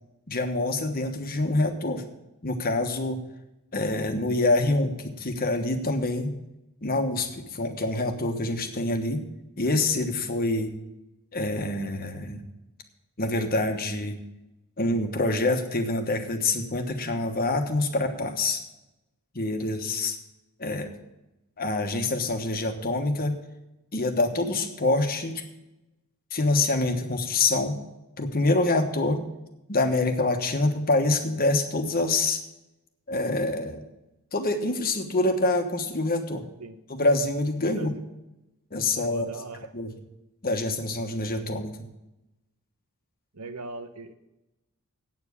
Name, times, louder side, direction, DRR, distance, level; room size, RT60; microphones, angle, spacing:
voice 1, 0.3-2.0 2.4-3.2 3.7-6.3 6.8-9.2 9.6-10.7 11.3-12.4 13.2-14.2 14.8-18.6 19.3-20.2 20.6-20.9 21.6-23.3 23.9-25.4 26.3-27.8 28.2-29.2 29.7-32.4 33.1-33.8 34.3-36.4 36.9-37.9 38.7-39.3 39.7-39.9 40.4-41.7, left 2 dB, 40° left, 6 dB, 1.3 m, -26 dB
voice 2, 37.6-38.0 39.1-39.7 43.3-44.1, right 3 dB, 90° right, 9 dB, 1.0 m, -40 dB
8.8 x 7.2 x 8.4 m, 0.95 s
head